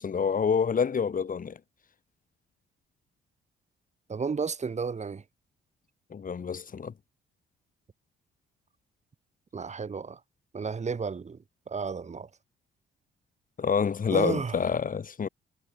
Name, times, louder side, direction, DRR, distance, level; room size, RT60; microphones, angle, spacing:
voice 1, 0.0-1.6 6.1-6.9 13.6-15.3, left 6 dB, 45° left, 4.7 m, -27 dB
voice 2, 4.1-5.2 9.5-10.2 10.5-11.4 11.7-12.3 14.1-14.6, right 5 dB, 35° right, 3.6 m, -32 dB
cardioid pair, 90°, 20 cm